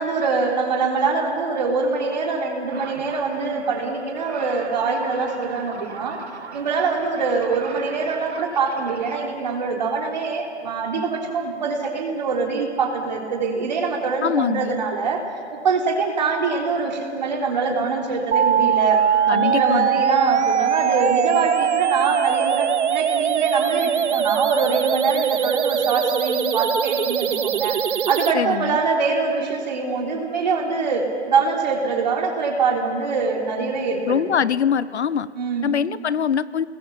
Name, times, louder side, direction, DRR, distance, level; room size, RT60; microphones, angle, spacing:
voice 1, 0.0-6.2 6.5-15.2 15.6-19.0 19.3-27.8 28.1-34.4 35.4-35.7, right 4 dB, 40° right, 1 dB, 3.7 m, -24 dB
sound 1, 2.7-9.3, right 5 dB, 70° right, 2.4 m, -39 dB
voice 2, 14.2-14.8 19.3-19.9 28.3-28.8 34.1-35.3 35.6-36.6, left 8 dB, 75° left, 18 dB, 0.8 m, -23 dB
sound 2, 18.3-28.3, right 8 dB, 90° right, 0.7 m, -21 dB
30.0 x 20.5 x 7.2 m, 2.5 s
hypercardioid pair, 170°, 34 cm